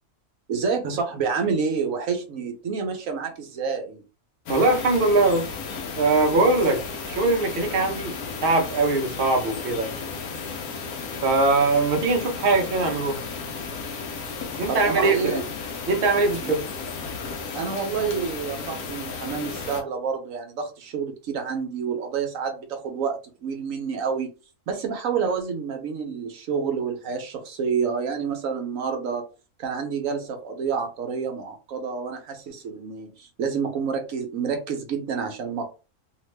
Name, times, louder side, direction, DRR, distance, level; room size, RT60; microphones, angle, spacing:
voice 1, 0.5-4.0 14.7-15.4 16.4-16.6 17.5-24.3 24.7-29.2 29.6-35.6, right 6 dB, 65° right, 1.0 m, -28 dB
sound 1, 4.5-19.8, left 5 dB, 80° left, 1.1 m, -34 dB
voice 2, 4.5-5.5 6.0-8.1 8.4-9.9 11.2-13.2 14.6-15.5 15.9-16.6, right 3 dB, 50° right, 0.7 m, -21 dB
2.8 x 2.5 x 3.1 m
omnidirectional pair, 1.6 m